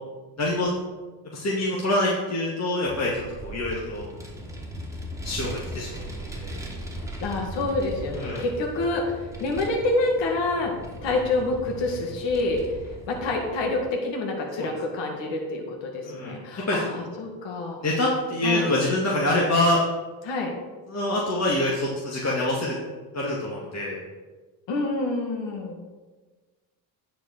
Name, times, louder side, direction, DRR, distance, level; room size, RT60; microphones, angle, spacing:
voice 1, 0.4-0.7 1.3-3.2 3.4-4.1 5.2-6.0 6.3-6.6 8.2-8.4 14.6-14.7 16.0-16.4 16.7-17.0 17.8-19.8 20.9-22.8 23.1-24.0, left 1 dB, 30° left, -4 dB, 2.2 m, -25 dB
Vehicle, 2.9-13.8, equal, 5° right, 2.6 m, -38 dB
voice 2, 7.2-10.8 11.0-12.6 13.1-17.8 18.4-18.7 20.2-20.5 24.7-25.8, left 2 dB, 60° left, 1 dB, 2.0 m, -27 dB
9.9 x 5.2 x 6.6 m, 1.3 s
supercardioid pair, 75°, 49 cm